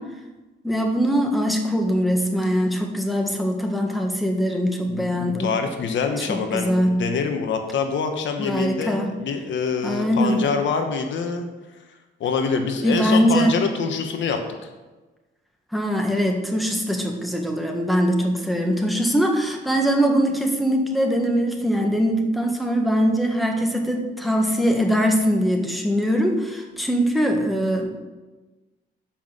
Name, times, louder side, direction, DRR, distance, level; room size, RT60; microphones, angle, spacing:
voice 1, 0.6-5.5 6.2-7.1 8.4-9.1 9.8-10.4 12.8-13.5 15.7-27.9, equal, ahead, 2 dB, 1.5 m, -22 dB
voice 2, 4.9-11.5 12.2-14.4, left 5 dB, 70° left, 6 dB, 1.1 m, -25 dB
7.2 x 5.7 x 7.5 m, 1.2 s
cardioid pair, 90°, 20 cm